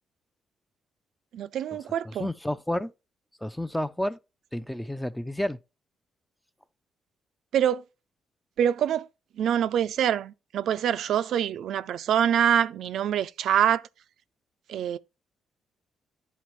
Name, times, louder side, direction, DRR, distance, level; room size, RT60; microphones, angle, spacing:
voice 1, 1.3-2.3 7.5-7.8 8.6-9.1 9.4-13.8 14.7-15.0, right 9 dB, 75° right, 0.3 m, -25 dB
voice 2, 2.0-2.9 3.4-4.2 4.5-5.6, left 1 dB, 5° left, 0.4 m, -30 dB
11.0 x 4.0 x 3.0 m
cardioid pair, 90°, 0 cm